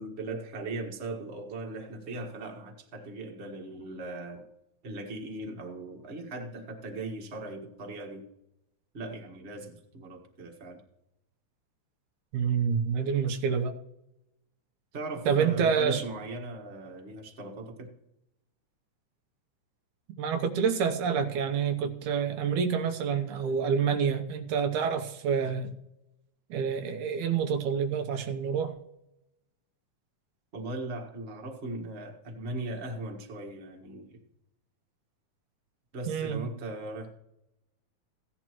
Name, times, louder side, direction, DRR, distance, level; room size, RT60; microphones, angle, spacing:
voice 1, 0.0-4.4 4.8-8.2 8.9-10.8 14.9-17.9 30.5-34.2 35.9-37.1, right 2 dB, 30° right, 1 dB, 1.4 m, -39 dB
voice 2, 12.3-13.7 15.3-16.0 20.2-25.7 26.5-28.7 36.1-36.4, right 6 dB, 85° right, 6 dB, 2.4 m, -27 dB
16.0 x 10.5 x 3.0 m, 0.84 s
omnidirectional pair, 3.4 m